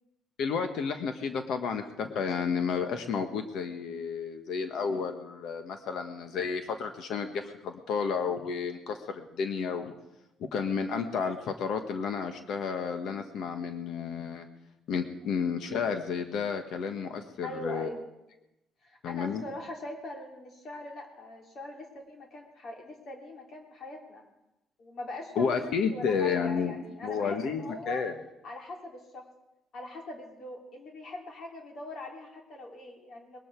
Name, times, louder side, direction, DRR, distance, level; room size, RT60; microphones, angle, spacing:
voice 1, 0.4-9.9 10.5-14.5 14.9-17.9 19.0-19.4 25.3-26.7 27.0-28.1, left 6 dB, 70° left, 7 dB, 1.4 m, -31 dB
voice 2, 17.4-18.0 18.8-24.2 24.8-28.0 28.4-29.3 29.7-33.4, left 2 dB, 55° left, 1 dB, 3.1 m, -42 dB
21.0 x 12.5 x 4.7 m, 0.93 s
cardioid pair, 110°, 0 cm